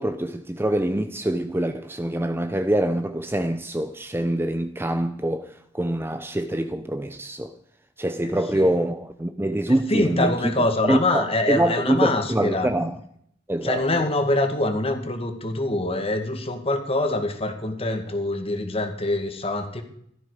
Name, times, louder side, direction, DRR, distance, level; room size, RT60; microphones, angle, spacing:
voice 1, 0.0-5.5 5.7-7.5 8.0-10.5 10.9-13.0 13.5-13.8, right 1 dB, 10° right, 0.6 m, -25 dB
voice 2, 8.2-8.7 9.9-12.7 13.6-19.8, left 2 dB, 30° left, 2.0 m, -25 dB
16.5 x 13.5 x 5.0 m
head